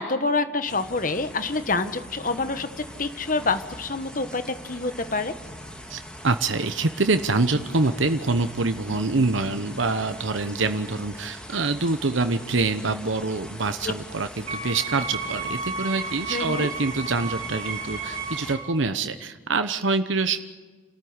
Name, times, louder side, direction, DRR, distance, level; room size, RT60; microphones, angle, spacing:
voice 1, 0.0-2.7 3.0-5.3 13.8-13.9 16.3-16.7, left 3 dB, 45° left, 10 dB, 1.3 m, -27 dB
sound 1, 0.7-18.5, equal, 5° left, 2.7 m, -42 dB
voice 2, 5.9-20.4, right 3 dB, 80° right, 9 dB, 1.0 m, -25 dB
Wind instrument woodwind instrument, 14.5-18.8, right 4 dB, 35° right, 3.6 m, -33 dB
29.5 x 13.5 x 9.6 m, 1.4 s
head